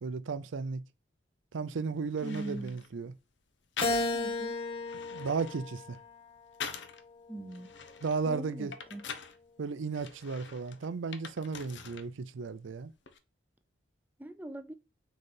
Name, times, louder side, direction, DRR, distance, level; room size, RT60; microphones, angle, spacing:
voice 1, 0.0-0.8 1.5-3.1 5.1-6.0 8.0-8.7 9.6-12.9, right 4 dB, 80° right, 0.5 m, -34 dB
sound 1, 1.7-1.8 2.2-2.9 3.8-4.4 4.8-7.0 7.5-9.4 9.9-12.1 12.4-13.2, left 6 dB, 70° left, 0.7 m, -44 dB
voice 2, 2.2-2.8 4.1-4.6 7.3-7.7 8.3-9.0 14.2-14.7, right 1 dB, 10° right, 0.3 m, -41 dB
Keyboard (musical), 3.8-6.3 6.9-8.1, left 2 dB, 25° left, 0.7 m, -35 dB
4.2 x 3.9 x 3.3 m
head